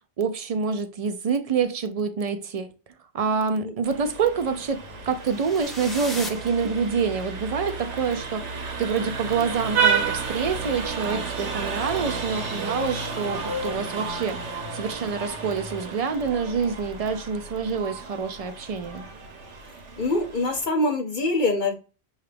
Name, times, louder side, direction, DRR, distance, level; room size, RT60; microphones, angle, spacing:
voice 1, 0.2-2.7 3.1-19.0, right 5 dB, 65° right, 0.3 m, -27 dB
Vehicle horn car horn honking, 3.8-20.7, right 5 dB, 90° right, 1.2 m, -31 dB
sound 1, 5.2-7.4, equal, ahead, 0.6 m, -38 dB
voice 2, 20.0-21.7, left 2 dB, 50° left, 0.7 m, -24 dB
6.8 x 2.4 x 3.3 m
omnidirectional pair, 1.2 m